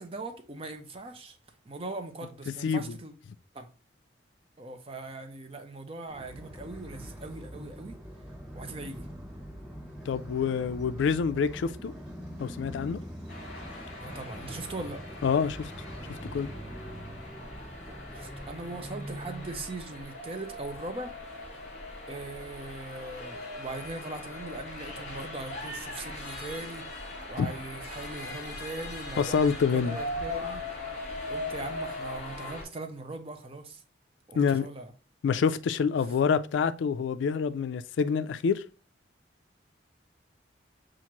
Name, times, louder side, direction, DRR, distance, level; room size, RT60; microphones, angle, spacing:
voice 1, 0.0-1.4 1.6-3.1 3.5-3.7 4.6-8.0 8.5-9.1 14.0-15.0 18.1-21.1 22.1-30.6 31.3-33.8 34.3-34.9, right 2 dB, 30° right, 0.5 m, -40 dB
sound 1, 6.1-19.6, equal, 10° right, 2.1 m, -43 dB
voice 2, 10.1-11.9 12.4-13.0 15.2-15.7 16.3-16.5 27.4-27.5 29.2-30.0 34.4-34.7 35.2-38.6, left 6 dB, 75° left, 0.3 m, -26 dB
sound 2, 13.3-32.6, left 2 dB, 35° left, 1.3 m, -40 dB
5.8 x 2.5 x 2.9 m
head